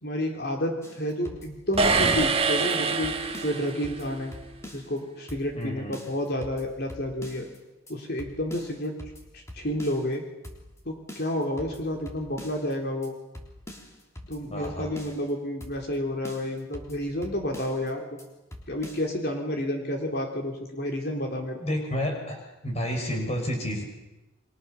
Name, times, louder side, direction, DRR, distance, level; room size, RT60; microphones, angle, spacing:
voice 1, 0.0-3.2 3.4-4.3 4.7-7.5 7.9-9.0 9.3-10.3 10.9-13.2 14.3-18.3 18.7-21.6, left 1 dB, 50° left, 2 dB, 3.6 m, -30 dB
sound 1, 0.8-2.4 2.7-2.8 3.0-5.0 5.3-5.7 5.9-7.6 7.9-8.0 8.2-10.2 10.4-10.8 11.1-12.7 13.0-13.1 13.3-15.3 15.6-16.0 16.2-17.9 18.2-18.3 18.5-19.1, left 1 dB, 15° left, 3.5 m, -44 dB
sound 2, 1.8-4.0, right 4 dB, 30° right, 1.6 m, -25 dB
voice 2, 5.5-5.9 14.5-14.9 21.6-23.8, equal, 30° left, 2 dB, 6.4 m, -30 dB
29.0 x 24.0 x 7.2 m, 1.0 s
head